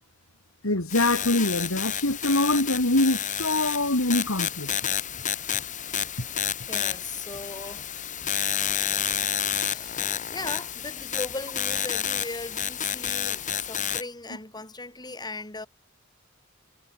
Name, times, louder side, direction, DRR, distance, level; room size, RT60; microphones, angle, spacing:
voice 1, 0.6-4.7, left 2 dB, 85° left, 4.1 m, -24 dB
sound 1, 0.9-14.0, left 9 dB, 40° left, 2.3 m, -30 dB
voice 2, 6.7-7.8 9.6-15.7, left 2 dB, 20° left, 6.6 m, -38 dB
head